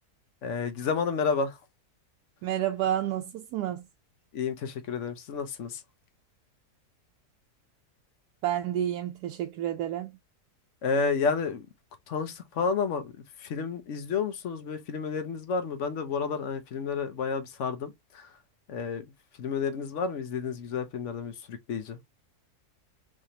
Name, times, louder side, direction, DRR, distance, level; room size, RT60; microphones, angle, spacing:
voice 1, 0.4-1.6 4.3-5.8 10.8-11.7 12.1-13.1 13.4-18.3 18.7-19.0 19.4-22.0, left 5 dB, 55° left, 1.0 m, -30 dB
voice 2, 2.4-3.8 8.4-10.2, right 11 dB, 85° right, 1.1 m, -30 dB
3.7 x 3.5 x 2.7 m
omnidirectional pair, 1.7 m